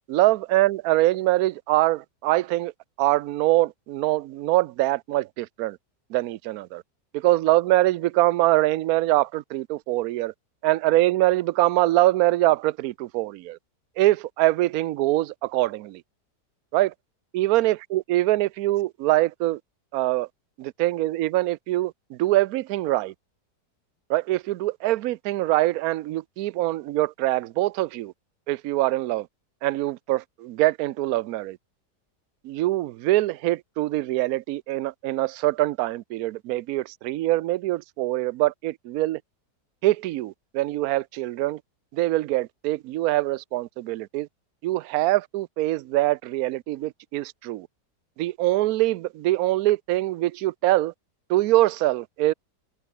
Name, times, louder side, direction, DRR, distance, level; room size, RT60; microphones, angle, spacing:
voice 1, 0.1-2.7 3.0-5.8 6.1-6.8 7.1-10.3 10.6-13.6 14.0-16.0 16.7-16.9 17.3-19.6 19.9-20.3 20.6-23.1 24.1-28.1 28.5-29.3 29.6-31.6 32.4-39.2 39.8-41.6 41.9-44.3 44.6-47.7 48.2-50.9 51.3-52.3, right 17 dB, 70° right, 1.0 m, -23 dB
omnidirectional pair, 1.8 m